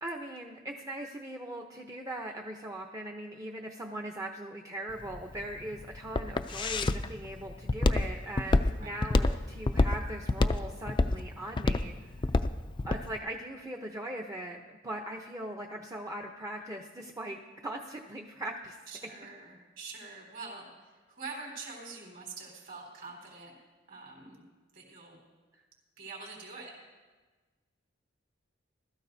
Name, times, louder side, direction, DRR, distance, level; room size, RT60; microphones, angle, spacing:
voice 1, 0.0-12.1 12.8-18.8, right 1 dB, 15° right, 2 dB, 0.7 m, -40 dB
Walk footsteps, 4.9-13.1, left 2 dB, 25° left, 0.4 m, -27 dB
voice 2, 18.9-23.5 23.9-24.4 24.7-25.2 26.0-26.7, right 4 dB, 55° right, -2 dB, 4.2 m, -45 dB
20.0 x 13.5 x 2.7 m, 1.3 s
head